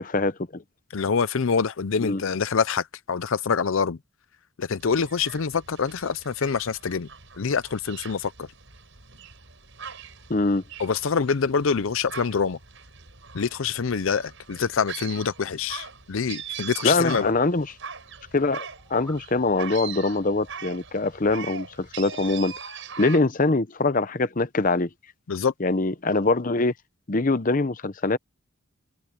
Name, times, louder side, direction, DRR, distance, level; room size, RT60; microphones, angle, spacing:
voice 1, 0.1-0.6 2.0-2.2 10.3-10.6 16.8-17.7 18.3-22.5 23.0-24.9 25.6-26.7 27.1-28.2, left 3 dB, 40° left, 0.8 m, -23 dB
voice 2, 0.9-4.0 4.6-7.1 7.4-8.5 10.8-12.6 13.3-17.3 25.3-25.5, left 5 dB, 70° left, 0.6 m, -25 dB
sound 1, 4.8-23.2, right 7 dB, 60° right, 6.3 m, -41 dB
sound 2, 18.6-19.3, left 1 dB, 5° left, 5.4 m, -48 dB
head